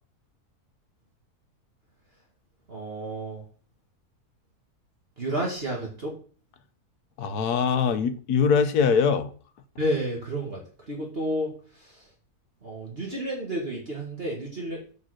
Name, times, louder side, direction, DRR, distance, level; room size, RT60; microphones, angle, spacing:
voice 1, 2.7-3.4 5.2-6.1 9.8-12.1 12.6-14.9, right 1 dB, 40° right, 2.0 m, -31 dB
voice 2, 7.2-9.3, left 6 dB, 80° left, 1.4 m, -22 dB
6.9 x 5.5 x 6.3 m
omnidirectional pair, 1.7 m